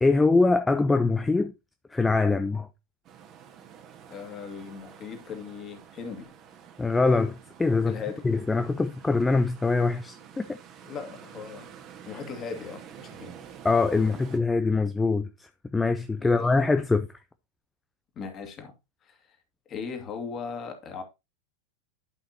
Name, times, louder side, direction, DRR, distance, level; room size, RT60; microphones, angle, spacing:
voice 1, 0.0-1.5 1.9-2.7 6.8-8.0 8.2-10.6 13.6-15.3 15.7-17.1, left 3 dB, 10° left, 0.6 m, -23 dB
sound 1, 3.0-14.4, right 8 dB, 35° right, 1.6 m, -49 dB
voice 2, 4.1-6.3 7.9-8.3 10.8-11.7 12.1-13.4 16.2-16.5 18.2-18.7 19.0-19.4 19.7-21.0, left 5 dB, 30° left, 2.2 m, -38 dB
11.0 x 5.7 x 2.8 m
figure-of-eight pair, 90°, 0 cm